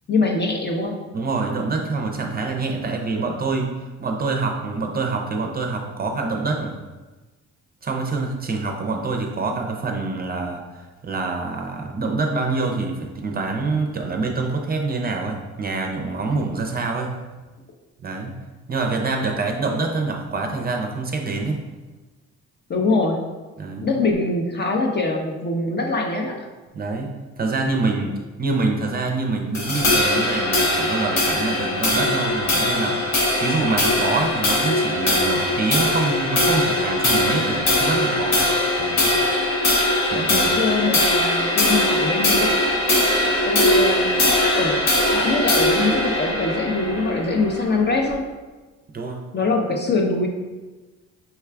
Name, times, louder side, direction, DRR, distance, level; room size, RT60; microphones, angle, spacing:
voice 1, 0.1-1.0 22.7-23.3 23.8-26.5 40.3-42.6 43.5-44.2 44.5-48.3 49.3-50.3, left 3 dB, 35° left, 2 dB, 0.7 m, -23 dB
voice 2, 1.1-3.7 4.0-6.8 7.8-17.1 18.0-18.3 18.7-21.7 23.6-23.9 26.7-38.5 38.8-39.1 40.1-40.5 48.9-49.2, right 3 dB, 30° right, 2 dB, 0.5 m, -26 dB
sound 1, 29.5-48.1, left 1 dB, 60° left, 1.1 m, -21 dB
5.7 x 2.3 x 3.3 m, 1.2 s
cardioid pair, 90°, 30 cm